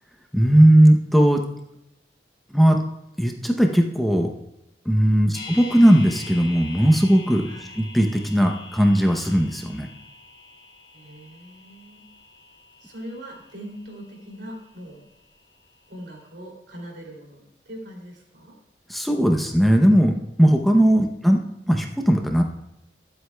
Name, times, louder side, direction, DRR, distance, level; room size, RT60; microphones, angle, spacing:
voice 1, 0.3-1.4 2.5-2.8 3.2-4.3 4.9-7.5 7.8-9.9 18.9-21.4 21.7-22.4, equal, ahead, 2 dB, 0.7 m, -18 dB
sound 1, 5.3-15.4 15.7-15.8, left 3 dB, 45° left, 2.2 m, -44 dB
voice 2, 7.4-7.8 10.9-12.0 12.8-15.0 15.9-18.6 21.0-21.1, equal, 80° right, -1 dB, 2.9 m, -41 dB
21.0 x 7.9 x 2.3 m, 0.87 s
head